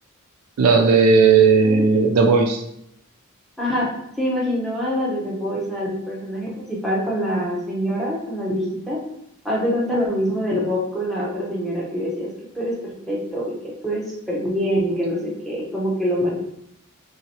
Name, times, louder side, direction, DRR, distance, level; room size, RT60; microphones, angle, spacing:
voice 1, 0.6-2.6, right 5 dB, 75° right, 3 dB, 0.3 m, -15 dB
voice 2, 3.6-3.9 4.2-9.0 9.4-12.3 12.5-12.7 13.1-13.5 13.8-16.3, equal, ahead, -6 dB, 0.7 m, -24 dB
3.0 x 2.8 x 2.9 m, 0.77 s
head